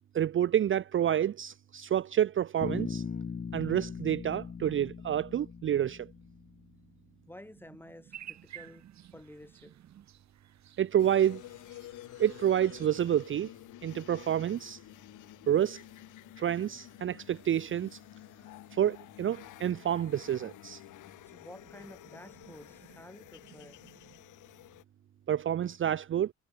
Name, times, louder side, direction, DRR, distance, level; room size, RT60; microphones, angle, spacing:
voice 1, 0.1-3.0 3.5-6.1 10.8-11.4 12.2-13.5 13.8-14.8 15.5-15.8 16.4-18.0 18.7-20.8 25.3-26.3, right 10 dB, 40° right, 0.6 m, -28 dB
Bass guitar, 2.6-6.7, left 6 dB, 30° left, 1.3 m, -39 dB
voice 2, 7.3-8.8 9.1-9.8 21.3-23.9, left 1 dB, 5° left, 2.7 m, -51 dB
sound 1, 8.1-13.3, right 11 dB, 65° right, 1.8 m, -53 dB
sound 2, 11.0-24.8, left 15 dB, 85° left, 1.5 m, -51 dB
cardioid pair, 90°, 30 cm